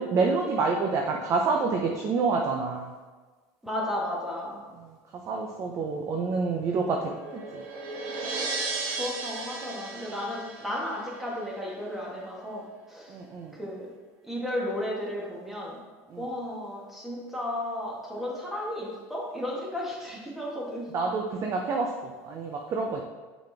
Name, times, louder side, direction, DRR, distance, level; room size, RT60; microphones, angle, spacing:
voice 1, 0.0-2.9 4.7-4.9 5.3-7.6 13.1-13.6 16.1-16.3 20.9-23.0, right 4 dB, 35° right, 1 dB, 0.6 m, -28 dB
voice 2, 3.6-4.6 8.9-13.2 13.5-13.9 14.3-15.8 16.2-20.9, left 1 dB, 5° right, -4 dB, 1.6 m, -34 dB
sound 1, 6.3-11.4, right 3 dB, 60° right, 1.5 m, -35 dB
6.6 x 4.2 x 3.4 m, 1.3 s
supercardioid pair, 130°, 9 cm